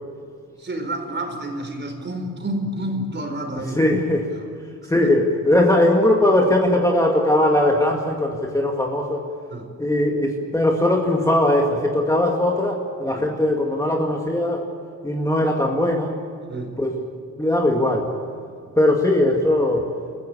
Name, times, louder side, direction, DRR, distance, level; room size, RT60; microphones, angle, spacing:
voice 1, 0.6-3.8 4.4-4.5 4.8-4.9 9.5-9.7 13.1-13.3 16.5-16.8, right 1 dB, 30° right, 4 dB, 4.5 m, -29 dB
voice 2, 3.8-4.3 4.9-9.3 9.8-14.6 15.0-16.2 16.8-17.0 17.4-18.1 18.8-19.9, left 1 dB, 10° left, 0 dB, 2.1 m, -19 dB
28.5 x 15.0 x 8.5 m, 2.3 s
wide cardioid pair, 125°, 35 cm